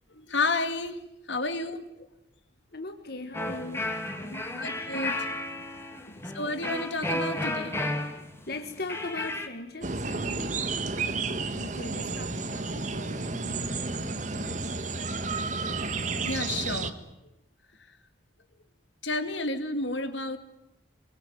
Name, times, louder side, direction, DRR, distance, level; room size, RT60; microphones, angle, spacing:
voice 1, 0.1-1.0 1.3-1.9 4.6-5.4 6.3-7.8 16.2-17.0 19.0-20.4, left 3 dB, 70° left, 9 dB, 2.3 m, -31 dB
voice 2, 2.7-4.0 4.2-4.8 6.1-6.2 8.5-10.6 11.0-14.8, left 2 dB, 55° left, 6 dB, 1.8 m, -40 dB
sound 1, 3.3-9.5, left 1 dB, 15° left, 2.4 m, -33 dB
sound 2, 9.8-16.9, right 3 dB, 40° right, 1.5 m, -31 dB
26.5 x 22.5 x 9.5 m, 0.88 s
head